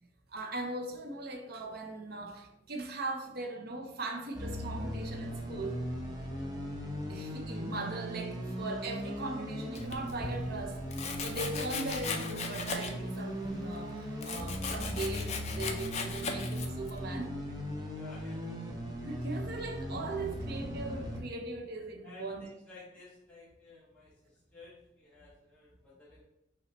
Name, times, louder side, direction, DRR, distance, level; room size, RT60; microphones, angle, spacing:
voice 1, 0.3-5.8 7.1-10.8 11.2-17.3 19.0-22.4, right 2 dB, 55° right, 0.7 m, -39 dB
sound 1, 4.3-21.2, equal, 20° right, 0.7 m, -38 dB
Domestic sounds home sounds, 9.7-10.4 10.9-13.2 13.5-17.0, left 5 dB, 35° left, 0.5 m, -38 dB
voice 2, 17.9-18.6 22.0-26.3, left 2 dB, 5° left, 0.9 m, -54 dB
5.7 x 2.1 x 4.1 m
head